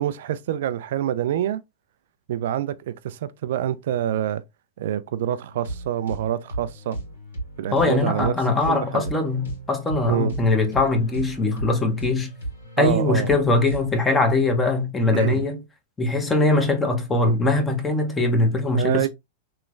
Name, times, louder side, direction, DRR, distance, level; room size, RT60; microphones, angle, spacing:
voice 1, 0.0-1.6 2.3-4.4 4.8-7.0 7.6-8.4 8.7-9.1 10.0-10.3 12.8-13.3 15.1-15.4 17.2-17.4 18.8-19.1, right 11 dB, 70° right, 0.4 m, -26 dB
sound 1, 5.5-14.0, right 1 dB, 85° left, 1.9 m, -36 dB
voice 2, 7.7-12.3 12.8-15.6 16.0-19.1, left 2 dB, 15° left, 0.8 m, -21 dB
3.2 x 2.9 x 2.4 m
hypercardioid pair, 110°, 0 cm